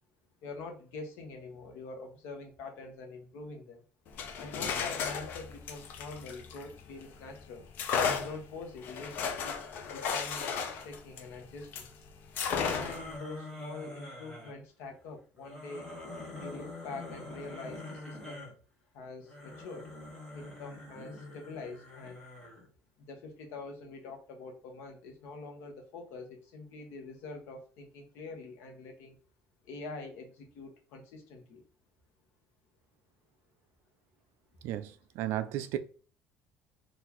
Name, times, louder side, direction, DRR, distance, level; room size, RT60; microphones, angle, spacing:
voice 1, 0.4-3.8 4.4-7.7 8.2-11.9 12.5-15.9 16.4-18.5 18.9-19.9 20.3-22.2 23.0-29.2 29.6-31.6, left 3 dB, 65° left, 0.9 m, -45 dB
sound 1, 4.1-7.1 7.7-11.9 12.3-13.1, left 6 dB, 45° left, 0.4 m, -34 dB
sound 2, 12.5-14.5 15.4-18.5 19.2-22.7, left 2 dB, 10° left, 0.9 m, -45 dB
voice 2, 34.6-35.8, right 13 dB, 65° right, 0.3 m, -34 dB
3.8 x 2.5 x 2.9 m
cardioid pair, 180°, 4 cm